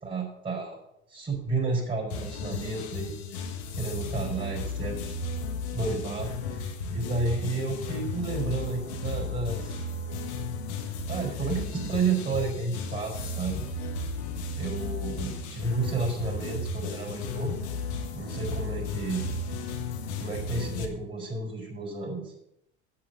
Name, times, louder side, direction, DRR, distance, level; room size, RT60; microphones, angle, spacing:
voice 1, 0.0-0.8 1.1-3.4 3.7-5.1 5.7-9.8 11.1-13.7 14.5-17.6 18.1-19.2 20.2-22.3, right 3 dB, 25° right, -3 dB, 4.7 m, -31 dB
sound 1, 2.1-20.8, left 3 dB, 80° left, 1.6 m, -34 dB
8.8 x 8.4 x 7.8 m, 0.79 s
hypercardioid pair, 70°, 32 cm